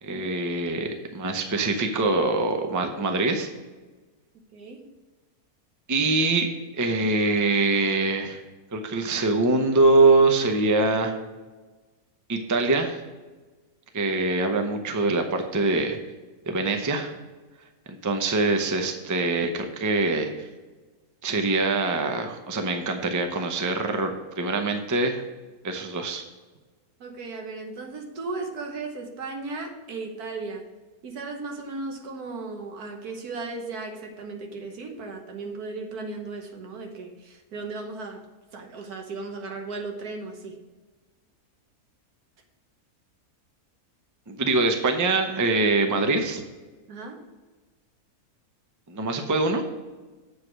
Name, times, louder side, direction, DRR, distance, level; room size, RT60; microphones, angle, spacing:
voice 1, 0.0-3.5 5.9-8.4 8.7-11.1 12.3-13.0 13.9-16.0 16.5-17.1 17.9-20.5 21.2-25.2 25.6-26.2 44.3-46.4 48.9-49.6, right 3 dB, 20° right, 5 dB, 0.5 m, -24 dB
voice 2, 4.5-4.9 27.0-30.7 31.0-38.2 38.5-40.6 46.9-47.2, right 3 dB, 90° right, 4 dB, 1.6 m, -36 dB
7.5 x 4.8 x 6.1 m, 1.3 s
omnidirectional pair, 1.6 m